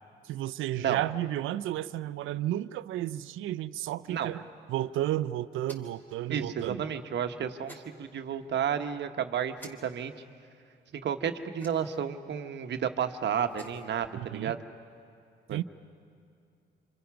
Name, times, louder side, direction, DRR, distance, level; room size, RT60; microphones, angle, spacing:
voice 1, 0.2-4.4 4.7-6.8 14.2-14.6 15.5-15.6, right 13 dB, 85° right, 15 dB, 0.6 m, -32 dB
sound 1, 5.6-6.1 7.7-7.9 9.6-9.7 11.6-12.0 13.4-13.9, right 1 dB, 10° left, 3.7 m, -49 dB
voice 2, 6.3-10.3 10.9-14.6 15.5-15.6, right 8 dB, 60° right, 7 dB, 1.2 m, -32 dB
27.0 x 26.5 x 5.9 m, 2.4 s
cardioid pair, 90°, 20 cm